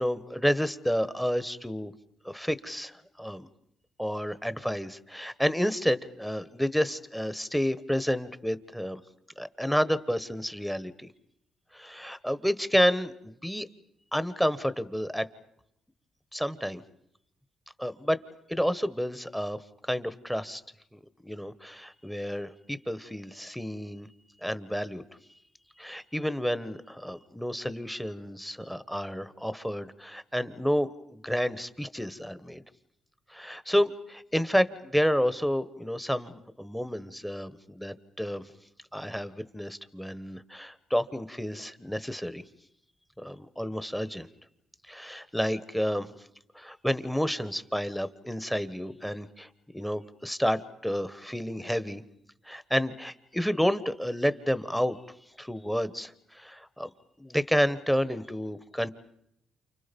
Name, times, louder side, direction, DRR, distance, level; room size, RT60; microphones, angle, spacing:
voice 1, 0.0-1.9 2.2-3.5 4.0-9.0 9.4-11.1 11.7-13.7 14.1-15.3 16.3-16.8 17.8-18.2 18.5-19.6 19.9-20.6 20.9-24.1 24.4-25.0 25.8-32.6 33.3-38.4 38.9-42.4 43.2-44.3 44.9-46.2 46.5-49.5 49.7-52.0 52.4-55.0 55.4-56.9 57.2-58.9, equal, 5° left, 13 dB, 1.3 m, -30 dB
29.5 x 29.0 x 5.4 m, 0.75 s
cardioid pair, 90°, 0 cm